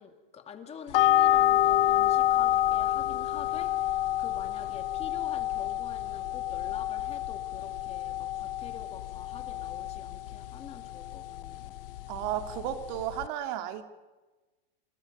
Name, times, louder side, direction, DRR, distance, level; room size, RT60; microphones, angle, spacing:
voice 1, 0.0-11.7, left 6 dB, 20° left, 6 dB, 2.5 m, -47 dB
sound 1, 0.9-13.3, left 13 dB, 70° left, 0.7 m, -28 dB
voice 2, 12.1-13.8, right 11 dB, 50° right, 7 dB, 2.4 m, -33 dB
29.0 x 27.5 x 5.5 m, 1.2 s
supercardioid pair, 150°, 29 cm